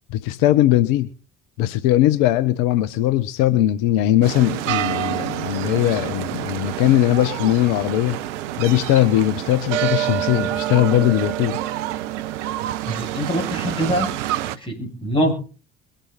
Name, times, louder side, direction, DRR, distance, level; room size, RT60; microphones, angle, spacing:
voice 1, 0.1-1.1 1.6-8.2 8.6-11.6, left 13 dB, 70° left, 14 dB, 0.9 m, -19 dB
sound 1, 4.2-14.6, right 13 dB, 80° right, 0.8 m, -27 dB
voice 2, 12.9-14.1 14.5-15.3, equal, 15° left, -1 dB, 7.1 m, -24 dB
23.0 x 7.8 x 4.1 m, 0.37 s
hypercardioid pair, 60°, 36 cm